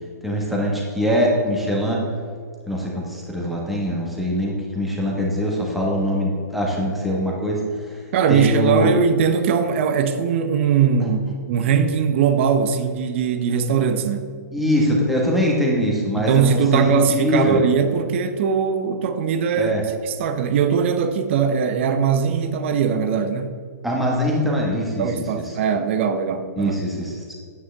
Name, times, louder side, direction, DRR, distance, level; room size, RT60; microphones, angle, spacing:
voice 1, 0.2-2.0 2.7-7.6 7.9-8.0 8.3-8.9 11.0-11.1 14.5-17.6 19.6-19.8 23.8-25.1 26.6-27.3, equal, ahead, -4 dB, 1.5 m, -22 dB
voice 2, 8.1-14.3 16.2-23.6 25.0-26.8, right 6 dB, 40° right, 9 dB, 0.8 m, -20 dB
9.5 x 9.1 x 3.5 m, 2.1 s
hypercardioid pair, 155°, 10 cm